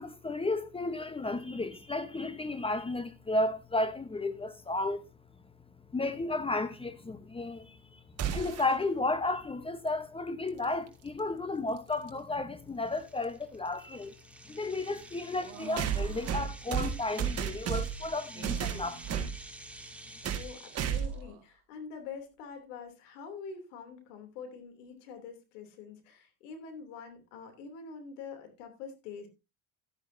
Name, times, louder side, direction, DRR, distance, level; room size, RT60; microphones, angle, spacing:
voice 1, 0.0-5.0 5.9-7.8 8.3-14.1 14.5-19.2, left 2 dB, 15° left, 0.9 m, -33 dB
sound 1, 8.2-8.7 10.9-11.0 12.1-12.2 15.8-18.1 18.4-19.4 20.2-20.5 20.7-21.2, right 8 dB, 40° right, 1.8 m, -32 dB
sound 2, 10.9-11.0 11.6-11.7 12.2-12.3 12.8-21.1, right 1 dB, 5° right, 1.7 m, -50 dB
sound 3, 15.4-16.4 18.3-19.3 20.8-21.5, right 10 dB, 60° right, 1.9 m, -47 dB
voice 2, 20.3-29.3, left 5 dB, 85° left, 3.0 m, -45 dB
12.5 x 10.5 x 2.7 m
supercardioid pair, 100°, 36 cm